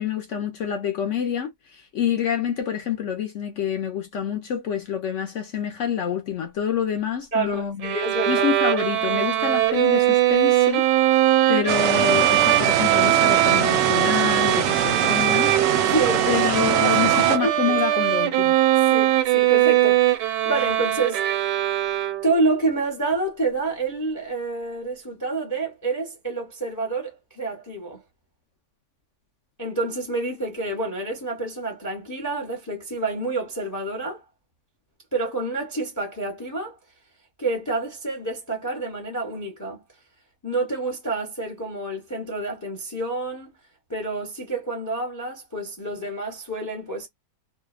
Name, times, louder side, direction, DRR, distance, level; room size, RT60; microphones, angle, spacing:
voice 1, 0.0-8.0 8.3-10.9 11.2-15.9 16.3-18.6, left 8 dB, 65° left, 0.7 m, -27 dB
voice 2, 7.3-8.5 15.9-16.4 16.8-18.0 18.9-21.4 22.2-28.0 29.6-34.2 35.1-36.8 37.4-39.8 40.4-43.5 43.9-47.1, right 2 dB, 20° left, 0.5 m, -28 dB
Bowed string instrument, 7.8-22.5, right 13 dB, 90° right, 1.2 m, -21 dB
sound 1, 11.7-17.4, right 9 dB, 70° right, 0.9 m, -24 dB
2.7 x 2.1 x 2.2 m
omnidirectional pair, 1.8 m